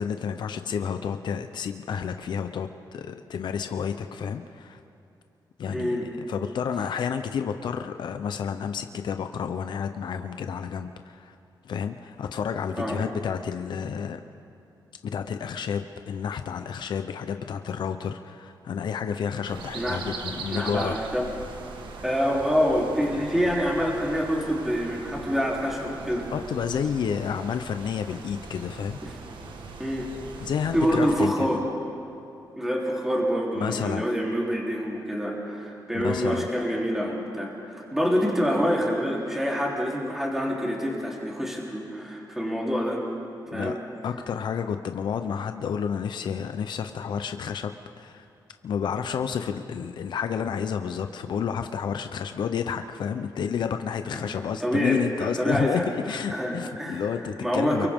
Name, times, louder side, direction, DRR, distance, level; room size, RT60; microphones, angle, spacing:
voice 1, 0.0-4.8 5.6-6.0 6.3-11.3 11.6-14.2 15.1-21.0 26.3-29.0 30.4-31.6 33.6-34.1 35.9-36.5 43.5-43.7 44.0-47.7 48.0-48.2 48.6-57.9, left 7 dB, 70° left, 7 dB, 0.7 m, -30 dB
voice 2, 5.7-6.1 12.8-13.1 19.7-20.0 20.5-21.3 22.0-26.3 29.0-29.1 29.8-30.1 30.7-31.6 32.6-43.0 43.5-43.8 54.1-54.2 54.6-55.9 56.3-57.1 57.4-57.9, equal, 5° right, -4 dB, 3.5 m, -26 dB
sound 1, 19.4-31.2, right 4 dB, 85° right, 1.5 m, -40 dB
30.0 x 23.5 x 3.7 m, 2.7 s
wide cardioid pair, 130°, 8 cm